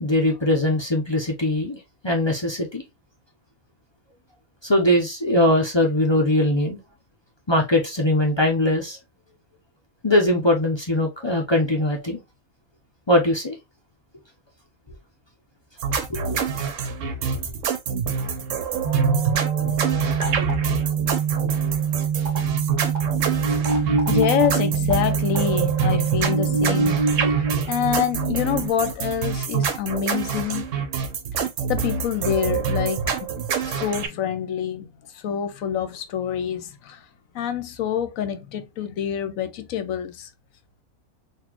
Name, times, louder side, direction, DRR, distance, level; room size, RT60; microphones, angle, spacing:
voice 1, 0.0-2.8 4.6-6.8 7.5-9.0 10.0-12.2 13.1-13.6 16.1-16.2, left 1 dB, 30° left, 0.5 m, -21 dB
sound 1, 15.8-34.1, right 5 dB, 65° right, 1.0 m, -26 dB
sound 2, 18.8-28.7, right 6 dB, 35° right, 0.9 m, -24 dB
voice 2, 20.3-20.7 23.6-23.7 24.1-30.7 31.7-33.3 33.6-37.1 37.3-40.3, left 9 dB, 70° left, 1.0 m, -27 dB
4.0 x 2.6 x 2.9 m
omnidirectional pair, 1.5 m